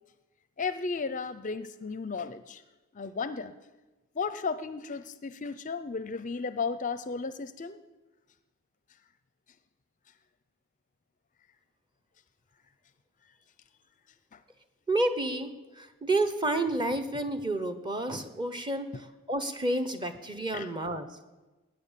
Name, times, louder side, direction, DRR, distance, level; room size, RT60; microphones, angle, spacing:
voice 1, 0.6-2.6 2.9-3.5 4.1-7.8 14.3-14.4 18.9-19.0 20.5-20.7, left 4 dB, 35° left, 14 dB, 0.5 m, -34 dB
voice 2, 14.9-21.1, right 2 dB, 20° right, 9 dB, 1.1 m, -30 dB
19.5 x 9.7 x 7.5 m, 1.1 s
head